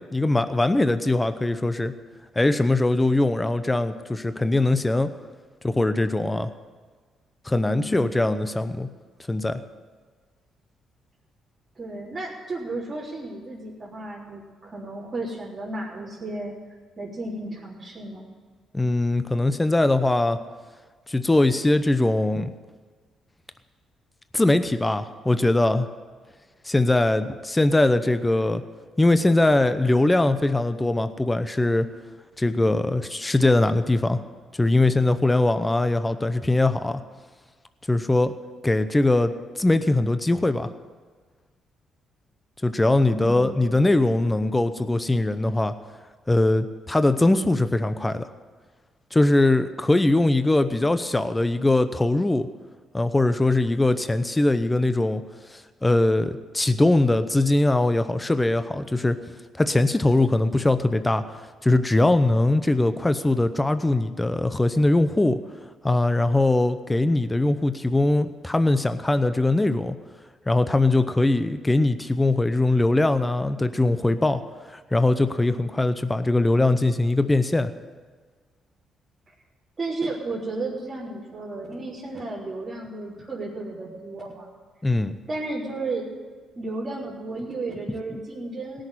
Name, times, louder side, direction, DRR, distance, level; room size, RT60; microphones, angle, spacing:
voice 1, 0.0-1.9 2.3-5.1 5.6-6.5 7.4-8.9 9.3-9.6 18.7-20.4 21.1-22.5 24.3-25.9 26.6-28.6 29.0-31.9 32.4-34.2 34.5-37.0 37.9-38.3 38.6-40.7 42.6-45.7 46.3-48.3 49.1-52.5 52.9-55.2 55.5-59.2 59.6-61.4 61.6-65.4 65.8-70.0 70.5-74.4 74.7-77.7 84.8-85.1 88.1-88.2, left 2 dB, 15° left, 11 dB, 0.7 m, -21 dB
voice 2, 7.7-8.3 11.8-16.5 17.0-18.3 43.1-44.0 79.8-84.5 85.3-86.1 86.5-88.8, right 2 dB, 30° right, -8 dB, 3.8 m, -33 dB
17.5 x 6.5 x 10.0 m, 1.5 s
cardioid pair, 90°, 0 cm